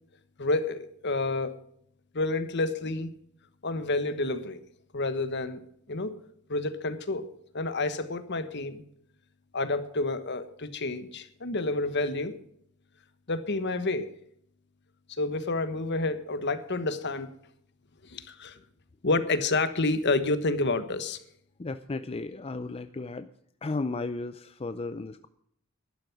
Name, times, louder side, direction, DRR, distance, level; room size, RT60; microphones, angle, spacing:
voice 1, 0.4-1.6 2.1-3.1 3.6-4.6 4.9-5.6 5.9-6.2 6.5-7.3 7.5-8.8 9.5-12.4 13.3-14.1 15.2-17.3 18.0-18.6 19.0-21.2, left 2 dB, 55° left, 11 dB, 1.3 m, -29 dB
voice 2, 21.6-23.3 23.6-25.3, left 3 dB, 30° left, 11 dB, 0.5 m, -34 dB
12.0 x 11.5 x 6.0 m, 0.68 s
head